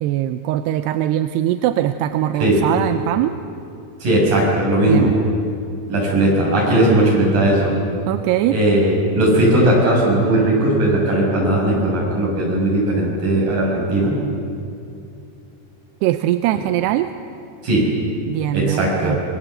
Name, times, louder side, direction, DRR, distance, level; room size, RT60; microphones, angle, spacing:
voice 1, 0.0-3.4 4.8-5.1 8.1-8.6 16.0-17.1 18.3-19.2, right 13 dB, 80° right, 9 dB, 2.6 m, -21 dB
voice 2, 4.0-5.1 5.9-7.7 8.5-14.2 17.6-17.9 18.5-19.2, right 1 dB, 50° right, -3 dB, 8.3 m, -17 dB
26.0 x 23.0 x 7.9 m, 2.6 s
omnidirectional pair, 5.1 m